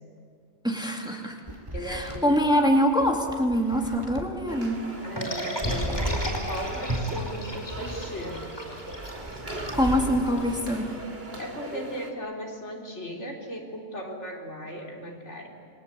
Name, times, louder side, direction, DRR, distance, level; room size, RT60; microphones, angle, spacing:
voice 1, 0.6-1.4 1.8-4.8 9.7-10.9, equal, 5° right, 1 dB, 2.6 m, -24 dB
sound 1, 1.5-4.6 4.9-6.6 6.9-10.5, right 1 dB, 25° right, 3.1 m, -35 dB
voice 2, 1.7-2.8 5.0-8.5 11.4-15.5, equal, 70° left, 0 dB, 4.1 m, -37 dB
sound 2, 4.5-12.1, right 1 dB, 55° right, 2.9 m, -40 dB
sound 3, 5.2-10.5, equal, 20° left, 4.9 m, -35 dB
29.0 x 22.5 x 8.5 m, 2.2 s
omnidirectional pair, 1.3 m